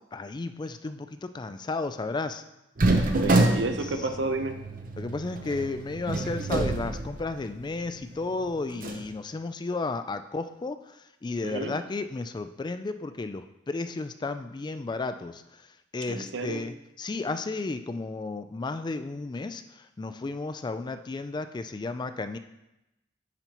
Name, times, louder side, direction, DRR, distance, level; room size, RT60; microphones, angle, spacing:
voice 1, 0.1-2.4 3.8-3.9 5.0-15.6 15.9-22.4, left 3 dB, 25° left, 10 dB, 0.3 m, -33 dB
sound 1, 2.8-7.7 8.0-8.1 8.7-9.1, right 2 dB, 50° right, 0.7 m, -27 dB
voice 2, 3.2-4.5 11.4-11.7 16.1-16.6, right 2 dB, 80° right, 6 dB, 0.8 m, -31 dB
9.9 x 5.3 x 3.0 m, 0.90 s
head